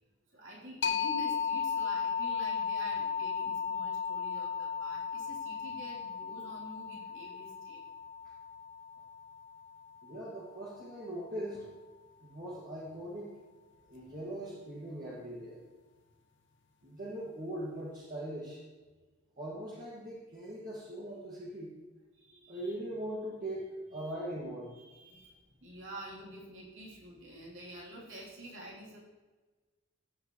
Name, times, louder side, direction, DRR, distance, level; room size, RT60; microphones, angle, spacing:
voice 1, 0.3-7.8 14.0-14.2 22.1-22.7 23.9-24.1 24.7-29.0, right 1 dB, 65° right, -5 dB, 3.3 m, -48 dB
sound 1, 0.8-10.2, left 6 dB, 60° left, 0.7 m, -35 dB
voice 2, 10.0-11.6 12.2-13.4 13.9-15.6 16.8-18.6 19.4-21.7 22.5-24.7, right 1 dB, 40° right, -7 dB, 1.9 m, -40 dB
14.0 x 7.8 x 3.1 m, 1.3 s
head